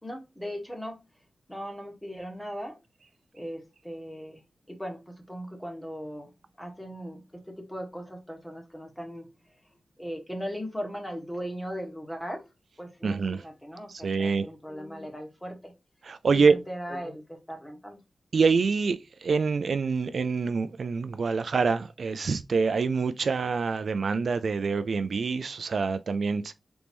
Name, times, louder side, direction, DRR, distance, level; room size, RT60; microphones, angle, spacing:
voice 1, 0.0-1.0 1.5-2.8 3.3-4.4 4.7-6.3 6.6-9.3 10.0-12.4 12.8-15.7 16.3-18.0, equal, 10° left, 1.4 m, -38 dB
voice 2, 13.0-13.4 13.9-14.5 16.0-16.6 18.3-26.5, right 4 dB, 70° right, 0.3 m, -26 dB
3.9 x 3.5 x 3.0 m
wide cardioid pair, 95°, 0 cm